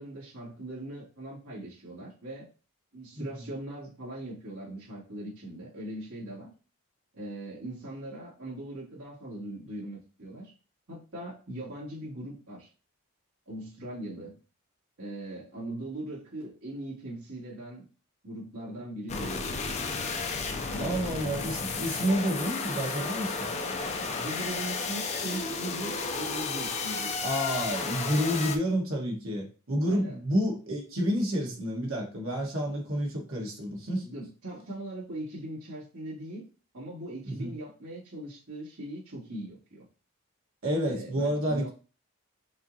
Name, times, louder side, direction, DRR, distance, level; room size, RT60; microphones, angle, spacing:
voice 1, 0.0-2.4 2.9-6.5 7.1-10.5 10.9-12.7 13.5-14.4 15.0-17.8 18.2-19.8 20.7-21.1 24.1-27.1 29.9-30.2 34.0-36.5 36.7-39.8 40.8-41.7, right 1 dB, 90° right, 2.7 m, -40 dB
sound 1, 19.1-28.6, left 4 dB, 30° left, 0.4 m, -33 dB
voice 2, 20.8-23.5 27.2-34.1 37.2-37.5 40.6-41.7, equal, 70° right, 1.5 m, -29 dB
6.0 x 2.9 x 2.8 m
head